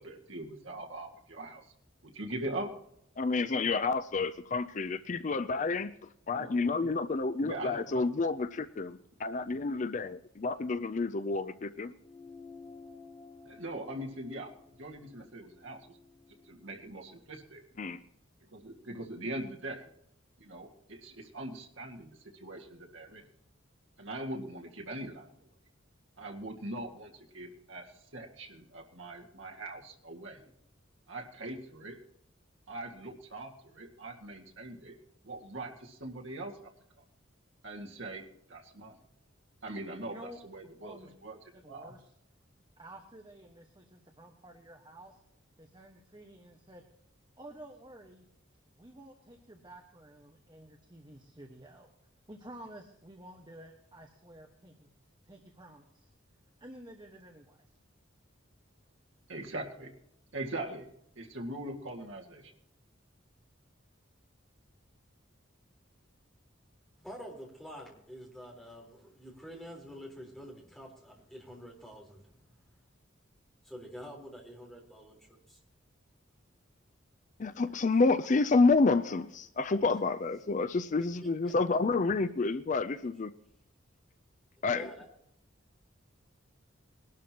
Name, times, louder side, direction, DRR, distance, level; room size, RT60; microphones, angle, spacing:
voice 1, 0.0-1.7 2.0-2.7 6.4-6.9 7.4-8.1 13.5-14.5 14.8-16.0 16.5-17.6 18.5-19.9 20.4-23.2 24.0-25.5 26.2-30.5 31.1-32.0 32.7-35.0 35.2-36.7 37.6-39.0 39.6-41.4 41.7-41.9 59.3-59.9 60.3-60.9 61.2-62.5, right 1 dB, 75° right, 2 dB, 2.0 m, -42 dB
voice 2, 3.2-11.9 17.8-18.0 77.4-83.3 84.6-84.9, left 3 dB, 40° left, 12 dB, 0.4 m, -29 dB
sound 1, 12.0-16.8, left 4 dB, 20° left, 2.0 m, -53 dB
voice 3, 40.1-40.4 40.8-41.1 41.5-42.1 42.8-45.2 45.6-46.8 47.4-48.3 48.8-51.9 52.3-54.9 55.2-56.1 56.6-57.6, right 1 dB, 20° right, 2 dB, 1.3 m, -51 dB
voice 4, 67.0-72.6 73.6-75.6 77.7-77.9 81.4-81.5 84.7-85.0, equal, ahead, -2 dB, 4.0 m, -48 dB
21.5 x 12.0 x 2.9 m, 0.75 s
head